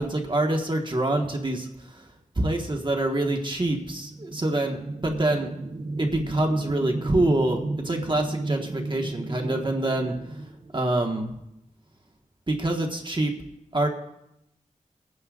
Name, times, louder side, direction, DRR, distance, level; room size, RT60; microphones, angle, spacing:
voice 1, 0.0-2.0 2.3-5.5 6.0-10.1 10.7-11.3 12.5-13.3 13.7-13.9, right 1 dB, 40° right, 2 dB, 1.5 m, -26 dB
sound 1, 3.6-11.2, right 2 dB, 85° right, 1.0 m, -34 dB
23.0 x 9.7 x 2.5 m, 0.83 s
wide cardioid pair, 60°, 13 cm